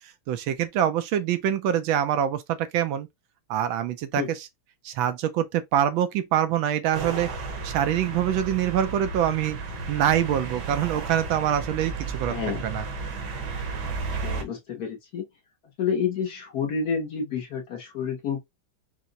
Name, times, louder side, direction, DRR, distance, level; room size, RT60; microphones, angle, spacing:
voice 1, 0.3-3.1 3.5-4.4 4.8-7.3 7.6-9.6 9.9-12.3 12.6-12.8, right 10 dB, 75° right, 1.4 m, -25 dB
sound 1, 6.9-14.4, right 4 dB, 60° right, 1.5 m, -33 dB
voice 2, 12.3-12.6 14.2-15.2 15.8-18.4, left 6 dB, 55° left, 1.2 m, -29 dB
4.5 x 2.1 x 3.8 m
omnidirectional pair, 2.2 m